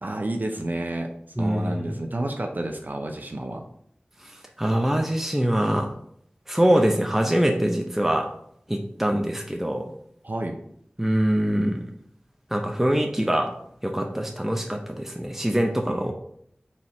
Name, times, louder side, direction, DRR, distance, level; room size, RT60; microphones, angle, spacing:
voice 1, 0.0-1.1 1.4-3.6 10.2-10.6 15.9-16.1, right 1 dB, 55° right, 3 dB, 0.6 m, -30 dB
voice 2, 1.4-1.9 4.6-5.9 6.5-8.3 8.7-9.9 11.0-11.9 12.5-13.5 13.8-16.1, right 1 dB, 10° right, 2 dB, 0.6 m, -23 dB
4.3 x 2.9 x 4.2 m, 0.68 s
wide cardioid pair, 45°, 4 cm